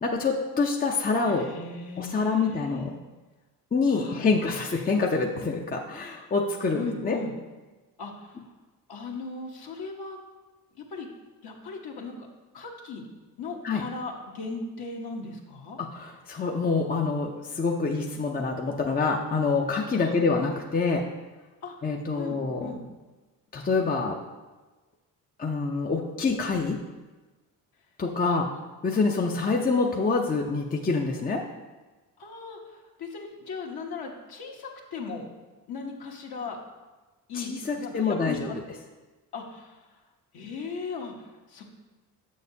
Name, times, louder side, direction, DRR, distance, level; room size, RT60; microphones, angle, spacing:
voice 1, 0.0-1.5 2.0-3.0 3.7-7.2 13.6-13.8 15.8-21.1 21.8-22.7 23.5-24.2 25.4-26.8 28.0-28.5 28.8-31.4 37.3-38.5, left 4 dB, 20° left, 1 dB, 0.6 m, -26 dB
voice 2, 1.2-2.9 3.9-4.4 6.7-7.3 8.0-8.4 8.9-10.2 10.7-11.1 11.4-12.3 12.5-13.0 13.4-15.8 19.9-20.2 21.6-21.7 22.1-22.9 28.2-28.4 32.2-35.3 35.7-36.6 37.3-38.6 39.3-39.8 40.3-41.6, left 4 dB, 55° left, 0 dB, 1.2 m, -37 dB
6.5 x 6.5 x 2.8 m, 1.2 s
hypercardioid pair, 55°, 45 cm